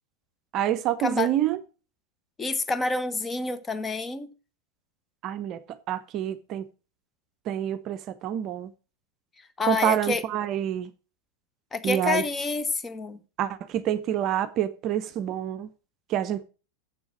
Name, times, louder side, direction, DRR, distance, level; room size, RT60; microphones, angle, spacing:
voice 1, 0.5-1.6 5.2-5.6 5.9-6.6 7.5-8.7 9.6-10.9 11.8-12.2 13.4-15.7 16.1-16.5, right 11 dB, 35° right, 0.7 m, -27 dB
voice 2, 2.4-4.3 9.6-10.2 11.7-13.2, left 3 dB, 15° left, 1.2 m, -28 dB
7.6 x 7.2 x 7.5 m
figure-of-eight pair, 90°, 0 cm